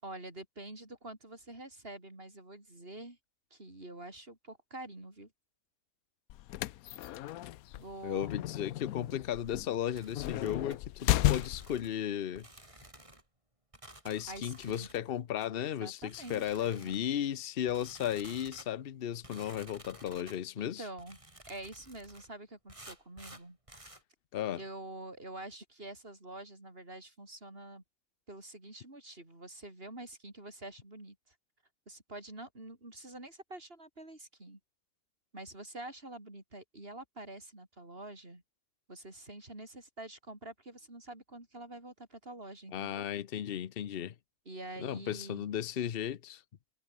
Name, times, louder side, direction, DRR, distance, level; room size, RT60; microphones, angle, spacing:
voice 1, 0.0-3.2 3.5-5.3 7.8-8.3 14.3-14.9 15.5-16.9 20.6-21.2 21.5-23.6 24.5-27.8 28.3-31.3 31.9-34.6 35.3-38.4 38.9-43.0 44.5-45.5, right 2 dB, 40° right, 5.8 m, -47 dB
sound 1, 6.3-11.9, left 14 dB, 90° left, 1.1 m, -33 dB
voice 2, 8.0-12.5 14.0-20.8 24.3-24.6 42.7-44.1 44.8-46.4, left 10 dB, 50° left, 0.9 m, -35 dB
sound 2, 9.9-10.8 11.2-12.0 12.3-13.2 13.7-15.0 15.4-15.5 16.0-17.1 17.7-18.7 19.2-20.4 21.0-22.3 22.7-24.0, right 1 dB, 20° right, 4.4 m, -53 dB
omnidirectional pair, 1.5 m